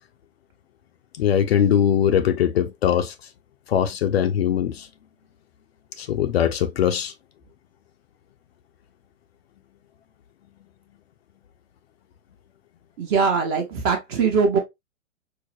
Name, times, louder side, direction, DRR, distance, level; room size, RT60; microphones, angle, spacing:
voice 1, 1.2-3.1 3.7-4.9 6.0-7.1, left 9 dB, 50° left, 0.5 m, -21 dB
voice 2, 13.0-14.6, right 5 dB, 30° right, 0.7 m, -21 dB
4.7 x 2.0 x 2.6 m
figure-of-eight pair, 115°, 41 cm